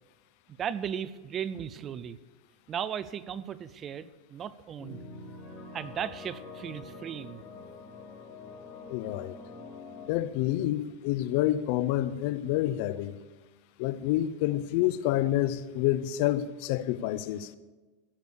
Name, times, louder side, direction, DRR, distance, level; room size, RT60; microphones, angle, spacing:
voice 1, 0.6-2.2 2.7-5.0 5.7-7.4, right 8 dB, 30° right, 0.6 m, -36 dB
sound 1, 4.8-10.1, left 3 dB, 30° left, 4.8 m, -45 dB
voice 2, 8.9-9.3 10.1-13.1 13.8-17.5, left 13 dB, 60° left, 0.6 m, -28 dB
16.0 x 6.8 x 6.4 m
supercardioid pair, 120°, 0 cm